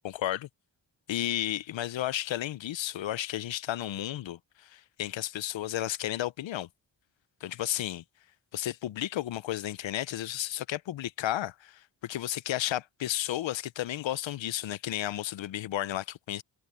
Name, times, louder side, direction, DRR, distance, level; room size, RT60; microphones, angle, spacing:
voice 1, 0.0-0.5 1.1-6.7 7.4-8.0 8.5-16.4, left 13 dB, 75° left, 0.7 m, -33 dB
cardioid pair, 60°, 45 cm